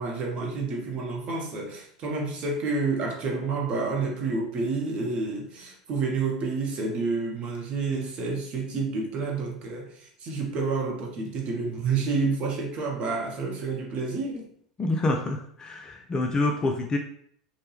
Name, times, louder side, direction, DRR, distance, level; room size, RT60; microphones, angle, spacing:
voice 1, 0.0-14.5, right 4 dB, 35° right, -1 dB, 0.8 m, -29 dB
voice 2, 14.8-17.0, left 2 dB, 20° left, 2 dB, 0.4 m, -27 dB
2.9 x 2.1 x 3.2 m, 0.62 s
figure-of-eight pair, 80°, 3 cm